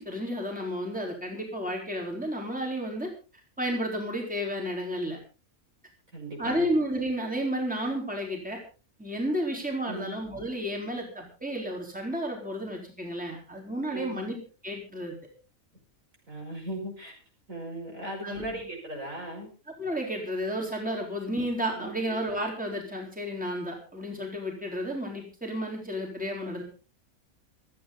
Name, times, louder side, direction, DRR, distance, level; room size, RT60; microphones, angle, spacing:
voice 1, 0.0-3.1 3.6-5.2 6.4-8.6 9.0-14.4 14.6-15.2 18.2-18.6 19.8-26.6, equal, 5° right, 0 dB, 4.0 m, -32 dB
voice 2, 6.1-6.7 9.9-10.2 13.9-14.2 16.3-17.1 17.5-19.5 21.7-22.1, right 1 dB, 65° right, 0 dB, 7.0 m, -38 dB
27.0 x 9.4 x 4.0 m, 0.35 s
omnidirectional pair, 1.5 m